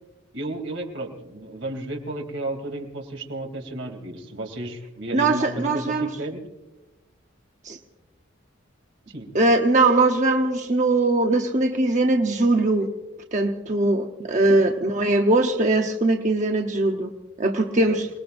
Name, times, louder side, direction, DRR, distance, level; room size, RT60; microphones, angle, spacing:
voice 1, 0.3-6.4 9.1-9.3 14.3-14.7 17.9-18.0, right 1 dB, 80° right, 3 dB, 3.0 m, -33 dB
voice 2, 5.1-6.1 7.6-7.8 9.3-12.9 13.3-17.1 17.4-18.1, right 2 dB, 40° right, 3 dB, 0.9 m, -21 dB
28.0 x 20.0 x 2.6 m, 1.1 s
head